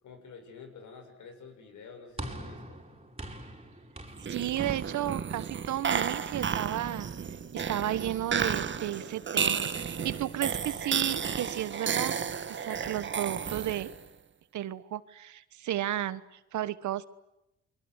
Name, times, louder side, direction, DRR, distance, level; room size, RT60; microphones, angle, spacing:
voice 1, 0.0-2.8, left 5 dB, 75° left, 6 dB, 6.9 m, -49 dB
sound 1, 2.2-6.6, right 1 dB, 20° right, 5.0 m, -45 dB
sound 2, 4.2-14.1, right 6 dB, 40° right, 1.6 m, -32 dB
voice 2, 4.3-7.1 7.5-12.2 12.5-13.9 14.5-16.2 16.5-17.1, right 13 dB, 70° right, 15 dB, 1.4 m, -33 dB
29.5 x 23.0 x 8.1 m, 0.86 s
cardioid pair, 90°, 30 cm